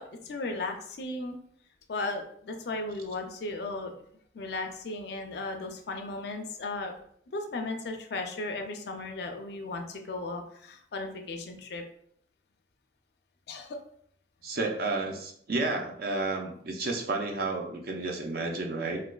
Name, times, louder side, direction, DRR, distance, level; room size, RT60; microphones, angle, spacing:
voice 1, 0.0-1.4 1.9-3.9 4.3-6.9 7.3-11.8 13.5-13.8, left 2 dB, 60° left, 4 dB, 0.4 m, -36 dB
voice 2, 14.4-19.0, right 3 dB, 55° right, 2 dB, 0.5 m, -31 dB
3.2 x 2.4 x 2.2 m, 0.65 s
head